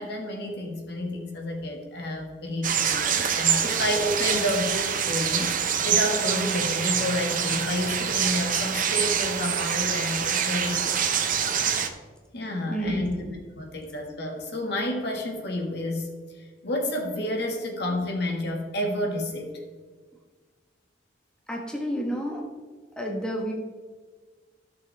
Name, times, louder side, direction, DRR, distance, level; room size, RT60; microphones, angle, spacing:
voice 1, 0.0-11.1 12.3-13.1 13.6-16.1 16.3-19.5, left 1 dB, 65° left, 1 dB, 1.7 m, -30 dB
sound 1, 2.6-11.9, right 8 dB, 50° right, 0.8 m, -25 dB
voice 2, 12.7-13.3 21.5-22.4 23.0-23.5, equal, 5° left, -1 dB, 1.3 m, -30 dB
14.0 x 6.3 x 3.4 m, 1.4 s
head